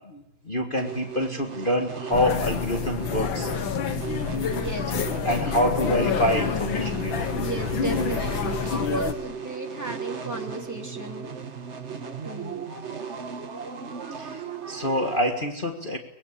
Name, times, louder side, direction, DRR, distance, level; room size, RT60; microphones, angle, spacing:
voice 1, 0.1-3.6 5.3-7.3 14.2-16.0, left 1 dB, 25° left, 3 dB, 1.9 m, -26 dB
sound 1, 0.8-15.2, right 6 dB, 40° right, 1.5 m, -36 dB
sound 2, 2.1-9.1, left 7 dB, 75° left, 2.1 m, -28 dB
voice 2, 4.5-5.0 7.3-11.3 12.2-12.7, right 3 dB, 10° right, 2 dB, 2.8 m, -35 dB
24.0 x 21.0 x 8.6 m, 0.87 s
omnidirectional pair, 2.2 m